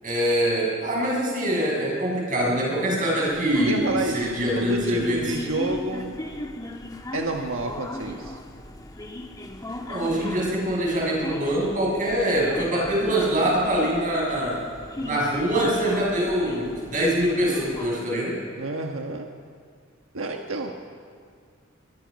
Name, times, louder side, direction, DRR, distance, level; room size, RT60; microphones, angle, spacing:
voice 1, 0.0-5.4 9.9-14.7 15.0-18.4, right 1 dB, 40° right, -3 dB, 6.8 m, -24 dB
sound 1, 3.3-17.9, left 1 dB, 20° left, 1.5 m, -36 dB
voice 2, 3.6-4.2 4.5-6.2 7.1-8.4 18.6-19.3 20.1-20.7, right 2 dB, 90° right, 2 dB, 1.4 m, -29 dB
23.0 x 21.0 x 5.3 m, 2.1 s
head